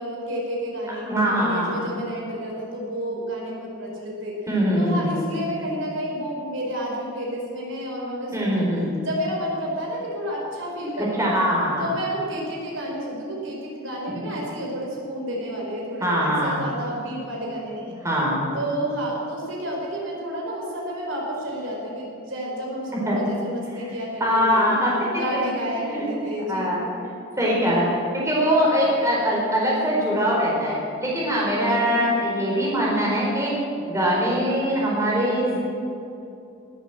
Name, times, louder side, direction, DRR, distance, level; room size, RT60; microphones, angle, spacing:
voice 1, 0.0-1.0 1.4-4.4 4.7-8.7 9.0-11.4 11.8-18.0 18.5-24.7 25.1-26.8 31.6-32.4, equal, 75° right, -2 dB, 4.7 m, -30 dB
voice 2, 0.9-1.7 4.5-5.1 8.3-8.9 11.0-11.9 14.1-14.3 16.0-16.6 18.0-18.4 23.1-23.2 24.2-24.9 25.3-25.4 25.9-26.1 26.5-26.8 27.4-33.5 33.9-35.6, equal, 15° right, -4 dB, 4.2 m, -22 dB
19.0 x 9.0 x 7.6 m, 2.7 s
head